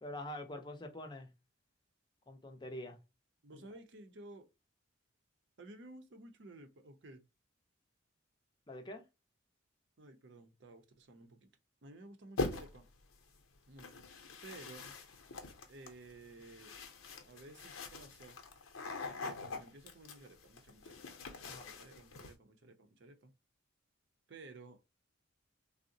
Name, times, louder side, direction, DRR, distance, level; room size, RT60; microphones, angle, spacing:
voice 1, 0.0-1.3 2.3-3.0 3.5-3.6 8.7-9.0 21.4-21.7, left 1 dB, 20° left, 0.5 m, -45 dB
voice 2, 3.4-4.5 5.6-7.2 10.0-11.5 11.8-12.9 13.7-14.0 14.4-15.3 15.7-16.9 17.2-18.4 19.0-21.0 21.4-23.3 24.3-24.8, right 2 dB, 55° right, 0.6 m, -54 dB
sound 1, 12.4-12.9 13.8-22.3, left 3 dB, 90° left, 0.7 m, -43 dB
3.6 x 2.0 x 2.5 m
head